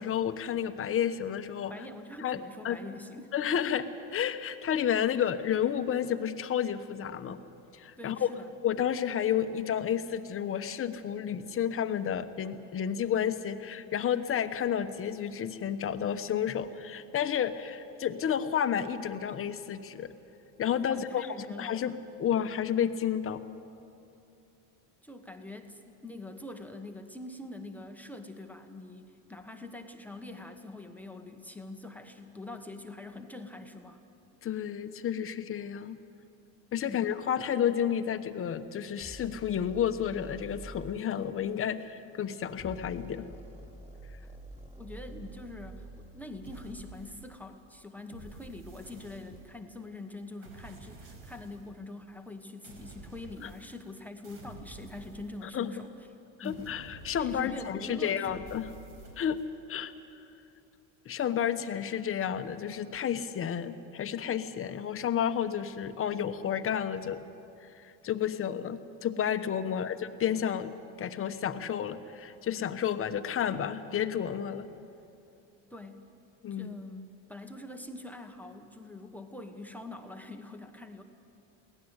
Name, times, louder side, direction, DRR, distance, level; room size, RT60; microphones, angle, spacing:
voice 1, 0.0-1.7 2.2-2.4 2.6-2.8 3.3-7.4 7.7-8.3 8.6-20.1 20.6-23.4 34.4-36.0 36.7-43.2 53.4-53.5 55.4-55.7 56.4-58.7 59.2-59.4 59.7-59.9 61.0-67.3 67.6-70.7 71.0-74.7 76.4-76.7, left 9 dB, 35° left, 9 dB, 1.1 m, -31 dB
voice 2, 1.7-3.3 8.0-8.5 20.8-21.8 25.0-34.0 36.9-37.1 44.8-55.9 56.4-56.7 57.2-58.4 69.7-69.9 75.7-76.1 76.5-81.0, left 2 dB, 5° left, 4 dB, 1.1 m, -44 dB
sound 1, 39.0-41.0 42.5-46.8, right 1 dB, 15° right, 2.8 m, -47 dB
sound 2, 46.4-47.6 48.1-49.7 50.4-51.7 52.6-53.9 54.2-55.8 56.4-57.8 58.2-59.5, right 3 dB, 65° right, 5.0 m, -50 dB
23.0 x 17.5 x 8.1 m, 2.8 s
cardioid pair, 125°, 39 cm